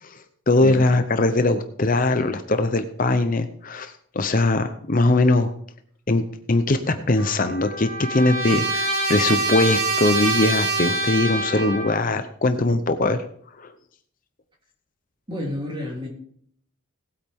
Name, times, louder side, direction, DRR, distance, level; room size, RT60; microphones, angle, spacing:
voice 1, 0.0-5.5 6.1-13.2 13.6-13.7, left 2 dB, 40° left, 8 dB, 0.7 m, -21 dB
voice 2, 0.6-0.9 15.3-16.1, left 1 dB, 20° right, -1 dB, 3.2 m, -30 dB
Trumpet, 7.2-12.1, right 2 dB, 85° right, 3.2 m, -25 dB
18.5 x 8.7 x 3.6 m, 0.63 s
head